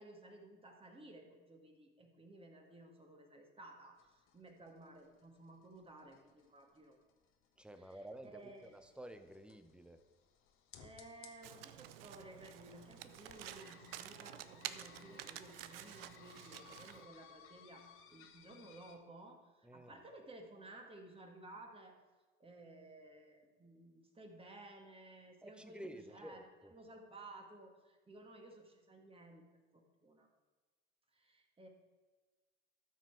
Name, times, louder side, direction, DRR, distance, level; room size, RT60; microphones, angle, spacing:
voice 1, 0.0-7.0 7.8-8.7 10.8-22.0 22.4-30.3 31.1-31.7, right 2 dB, 20° right, 3 dB, 1.8 m, -56 dB
sound 1, 4.0-19.0, left 7 dB, 45° left, 1.3 m, -62 dB
voice 2, 7.6-10.0 19.6-20.0 25.4-26.7, right 1 dB, 5° right, 9 dB, 0.9 m, -52 dB
Domestic sounds home sounds, 11.4-17.1, right 12 dB, 80° right, 0.6 m, -50 dB
13.0 x 6.1 x 4.6 m, 1.3 s
hypercardioid pair, 80°, 29 cm